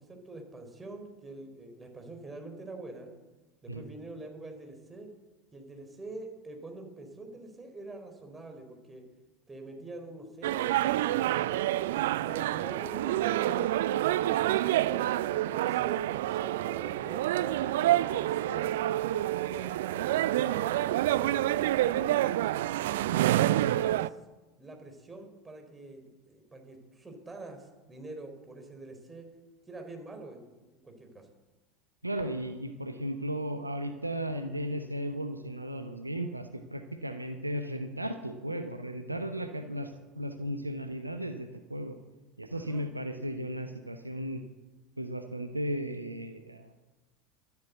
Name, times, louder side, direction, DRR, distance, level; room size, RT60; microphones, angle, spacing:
voice 1, 0.0-3.1 3.6-5.1 5.5-9.0 9.5-13.7 14.2-18.7 19.4-22.2 24.6-29.3 29.7-31.3 42.5-43.2, right 2 dB, 15° right, 4 dB, 3.7 m, -45 dB
sound 1, 10.4-24.1, right 14 dB, 60° right, 0.4 m, -28 dB
voice 2, 32.0-42.0 42.4-44.4 45.0-46.7, equal, 85° right, 8 dB, 0.9 m, -35 dB
13.0 x 12.0 x 7.9 m, 1.2 s
figure-of-eight pair, 75°, 0 cm